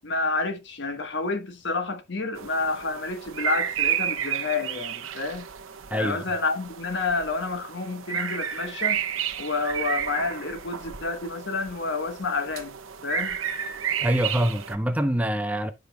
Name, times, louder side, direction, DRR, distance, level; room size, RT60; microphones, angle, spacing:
voice 1, 0.0-5.5 5.9-9.0 9.4-12.7 13.0-13.4, left 3 dB, 60° left, 1.2 m, -29 dB
sound 1, 2.4-14.8, right 9 dB, 90° right, 1.0 m, -32 dB
voice 2, 5.9-6.2 14.0-15.7, right 1 dB, 5° right, 0.6 m, -25 dB
11.5 x 5.1 x 2.2 m
head